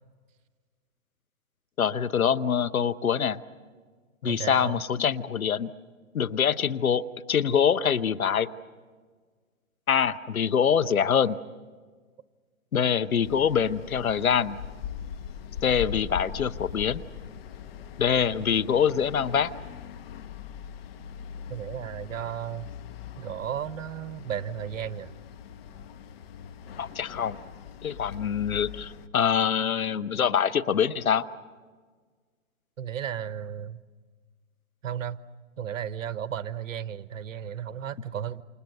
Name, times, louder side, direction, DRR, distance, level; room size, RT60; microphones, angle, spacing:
voice 1, 1.8-3.4 4.2-5.7 6.1-8.5 9.9-11.4 12.7-14.6 15.6-17.0 18.0-19.5 26.8-27.4 27.8-31.3, left 7 dB, 90° left, 14 dB, 1.0 m, -24 dB
voice 2, 4.2-4.8 21.5-22.7 23.1-25.1 32.8-33.8 34.8-35.2 35.6-38.4, right 9 dB, 65° right, 15 dB, 1.0 m, -34 dB
sound 1, 13.2-29.1, left 8 dB, 45° left, 1.3 m, -41 dB
28.0 x 27.5 x 6.6 m, 1.5 s
hypercardioid pair, 135°, 41 cm